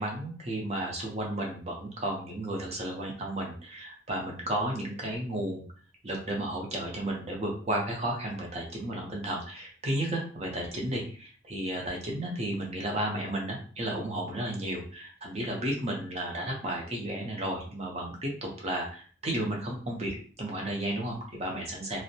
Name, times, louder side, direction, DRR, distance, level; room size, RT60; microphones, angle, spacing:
voice 1, 0.0-5.6 6.0-22.0, right 1 dB, 35° right, 0 dB, 0.6 m, -33 dB
2.6 x 2.0 x 2.7 m, 0.43 s
head